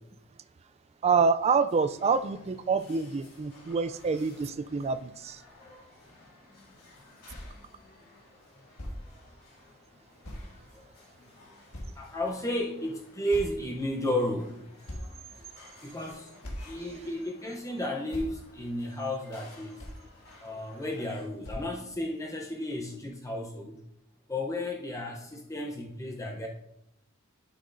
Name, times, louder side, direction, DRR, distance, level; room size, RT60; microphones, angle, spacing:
voice 1, 1.0-5.4, right 5 dB, 30° right, 12 dB, 0.3 m, -27 dB
sound 1, 1.7-21.3, left 2 dB, 85° left, 3.1 m, -56 dB
sound 2, 7.3-7.5 8.4-8.5 8.8-9.0 10.2-10.5 11.1-11.2 11.7-12.3 13.3-13.9 14.4-14.5 14.9-15.5 16.0-16.1 16.4-16.7 17.6-17.7 18.1-18.3 19.3-19.4 19.8-20.1 21.1-21.2 21.4-21.7, equal, 70° left, 1.7 m, -40 dB
voice 2, 12.0-14.6 15.8-16.3 16.6-19.8 20.4-23.8 24.3-26.5, left 1 dB, 15° left, -1 dB, 0.7 m, -33 dB
11.0 x 6.1 x 2.6 m, 0.85 s
head